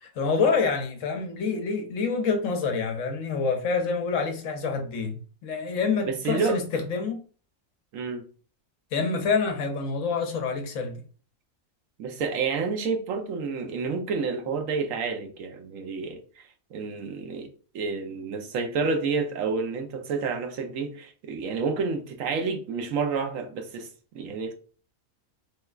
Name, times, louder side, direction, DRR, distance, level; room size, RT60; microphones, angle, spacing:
voice 1, 0.2-7.2 8.9-11.0, left 4 dB, 70° left, 0.9 m, -27 dB
voice 2, 6.1-6.6 7.9-8.2 12.0-16.2 16.7-17.5 17.7-23.9 24.1-24.5, right 4 dB, 70° right, 1.0 m, -29 dB
3.3 x 3.1 x 2.3 m
omnidirectional pair, 1.5 m